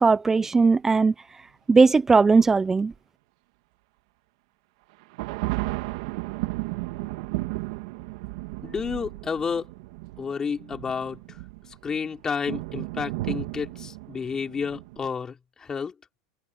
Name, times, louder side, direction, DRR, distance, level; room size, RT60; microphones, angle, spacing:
voice 1, 0.0-1.4 1.7-2.9, right 4 dB, 15° right, 0.8 m, -19 dB
sound 1, 2.3-2.5 5.0-15.1, right 21 dB, 70° right, 2.3 m, -34 dB
voice 2, 8.6-9.7 10.2-11.4 11.8-15.9, left 6 dB, 20° left, 4.1 m, -31 dB
supercardioid pair, 125°, 3 cm